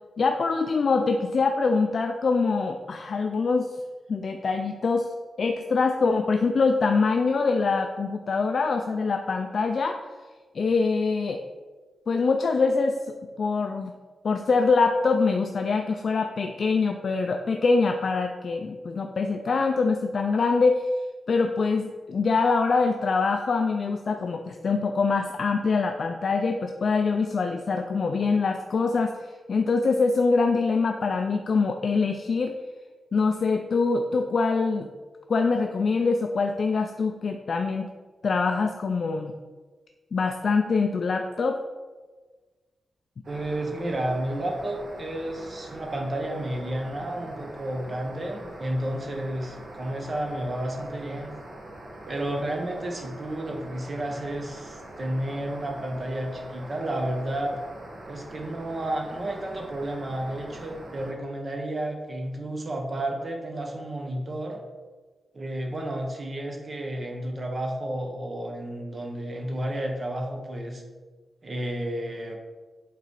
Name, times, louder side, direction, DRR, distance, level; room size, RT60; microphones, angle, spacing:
voice 1, 0.2-3.7 4.1-10.0 10.5-11.4 12.1-13.9 14.2-20.9 21.3-32.6 33.1-34.9 35.3-37.9 38.2-39.3 40.1-41.6, left 4 dB, 45° left, 5 dB, 0.4 m, -24 dB
sound 1, 43.2-61.1, right 1 dB, 50° right, 1.3 m, -43 dB
voice 2, 43.3-51.3 52.1-57.5 58.0-64.6 65.3-70.8 71.4-72.4, right 1 dB, 30° right, 2 dB, 1.1 m, -31 dB
8.3 x 4.0 x 4.6 m, 1.4 s
wide cardioid pair, 170°, 0 cm